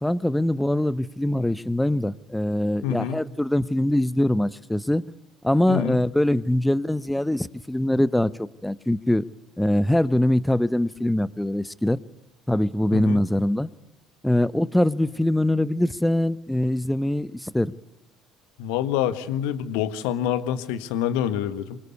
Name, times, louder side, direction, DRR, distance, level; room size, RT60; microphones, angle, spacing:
voice 1, 0.0-5.0 5.4-9.2 9.6-12.0 12.5-13.7 14.2-17.7, left 1 dB, 5° left, 18 dB, 1.0 m, -23 dB
voice 2, 2.8-3.2 5.7-6.0 12.9-13.2 18.6-21.8, left 10 dB, 65° left, 11 dB, 1.6 m, -26 dB
26.5 x 23.5 x 8.3 m, 0.92 s
figure-of-eight pair, 55°, 0 cm